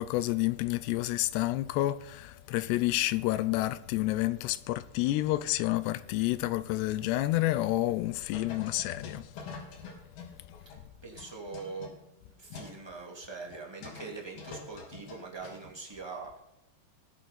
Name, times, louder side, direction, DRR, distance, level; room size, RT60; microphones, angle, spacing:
voice 1, 0.0-9.3, left 16 dB, 85° left, 2.8 m, -29 dB
sound 1, 8.3-10.8 11.2-12.8 13.1-13.2 13.5-14.1 14.4-15.7, left 4 dB, 65° left, 4.6 m, -46 dB
voice 2, 11.0-11.9 12.4-16.4, right 4 dB, 10° right, 2.0 m, -42 dB
20.0 x 7.8 x 4.3 m
omnidirectional pair, 4.8 m